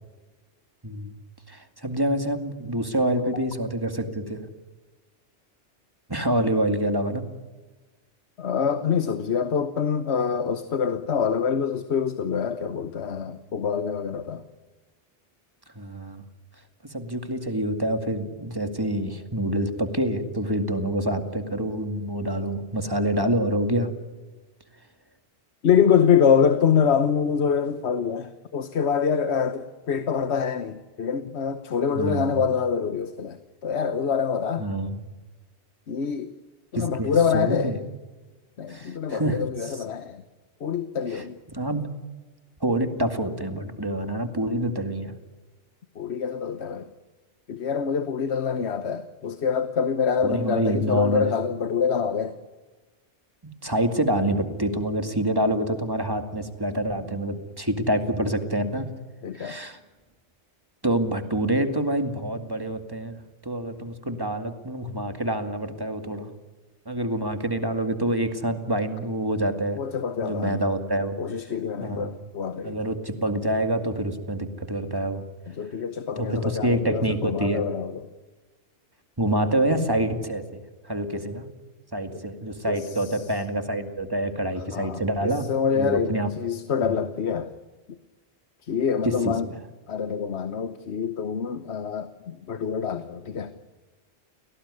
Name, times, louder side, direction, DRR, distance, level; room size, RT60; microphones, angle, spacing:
voice 1, 0.8-1.1 1.5-4.4 6.1-7.2 15.8-16.2 16.9-23.9 31.9-32.4 34.6-35.0 36.7-37.8 38.7-39.7 41.1-41.9 42.6-45.1 50.2-51.3 53.4-58.9 59.3-59.8 60.8-66.3 66.9-69.8 70.2-71.2 71.8-72.2 72.6-75.2 76.2-77.6 79.2-81.5 81.9-86.3 86.8-86.9 89.0-89.3, right 1 dB, 20° right, 2.2 m, -27 dB
voice 2, 8.4-14.4 25.6-33.4 33.6-34.7 35.9-36.3 36.7-37.7 38.6-40.2 40.6-41.4 46.0-46.9 47.5-52.4 59.2-59.6 69.8-70.6 71.2-72.8 75.5-78.0 82.1-82.2 82.7-83.2 84.7-87.5 87.9-88.0 88.6-89.5 89.9-93.5, left 7 dB, 70° left, 1.3 m, -25 dB
30.0 x 18.5 x 9.8 m
omnidirectional pair, 1.2 m